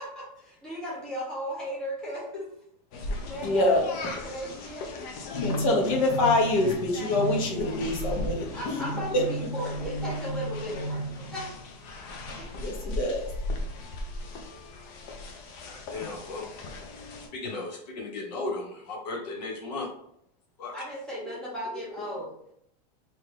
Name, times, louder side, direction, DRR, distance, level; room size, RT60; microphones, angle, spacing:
voice 1, 0.0-2.5 3.0-5.2 6.9-7.0 8.5-11.5 12.1-12.5 20.7-22.3, equal, 5° left, -6 dB, 0.8 m, -37 dB
sound 1, 2.9-17.3, equal, 35° left, 0.5 m, -35 dB
voice 2, 3.4-3.8 5.4-8.8 9.1-9.2 12.6-13.3, left 2 dB, 55° left, 1 dB, 1.0 m, -25 dB
voice 3, 15.6-16.5 17.3-19.9 20.6-20.9, left 3 dB, 80° left, -1 dB, 1.3 m, -35 dB
3.6 x 2.7 x 3.2 m, 0.72 s
supercardioid pair, 170°, 21 cm